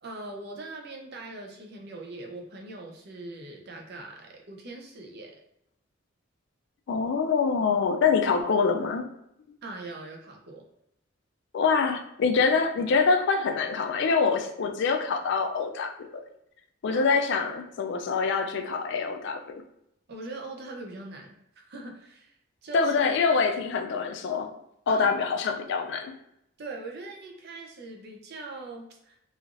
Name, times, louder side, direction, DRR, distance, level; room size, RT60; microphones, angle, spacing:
voice 1, 0.0-5.4 9.6-10.7 16.9-17.0 20.1-21.4 21.7-22.4 22.6-22.9 24.9-25.1 26.6-29.2, right 2 dB, 55° right, 2 dB, 0.5 m, -41 dB
voice 2, 6.9-9.1 11.5-16.1 16.8-19.6 22.7-24.6 24.9-26.1, left 5 dB, 60° left, 6 dB, 0.3 m, -25 dB
3.1 x 2.4 x 2.4 m, 0.78 s
head